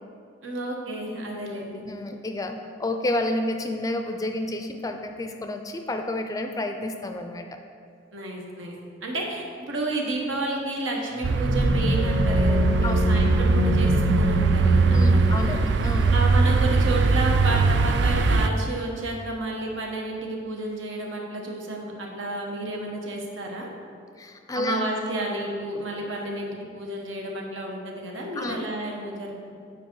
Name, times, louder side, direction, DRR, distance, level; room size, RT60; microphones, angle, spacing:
voice 1, 0.4-1.8 8.1-8.8 9.0-23.7 24.5-29.5, right 2 dB, 85° right, 0 dB, 1.2 m, -31 dB
voice 2, 1.9-7.5 12.8-13.0 14.9-16.1 24.2-24.8 28.4-28.7, left 1 dB, 20° left, 5 dB, 0.4 m, -30 dB
sound 1, 11.2-15.7, left 1 dB, 15° right, 0.7 m, -26 dB
sound 2, 11.2-18.5, right 3 dB, 60° right, 0.3 m, -21 dB
8.2 x 4.9 x 4.6 m, 2.3 s
head